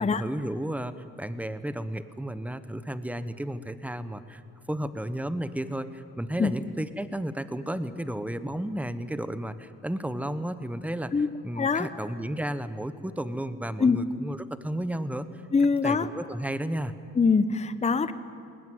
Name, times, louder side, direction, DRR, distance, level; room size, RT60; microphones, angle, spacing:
voice 1, 0.0-4.4 4.7-15.3 15.8-16.9, right 1 dB, 5° right, 12 dB, 1.1 m, -33 dB
voice 2, 11.6-11.9 13.8-14.0 15.5-16.1 17.2-18.1, left 5 dB, 20° left, 12 dB, 0.8 m, -23 dB
20.5 x 18.5 x 9.4 m, 2.5 s
cardioid pair, 90°, 30 cm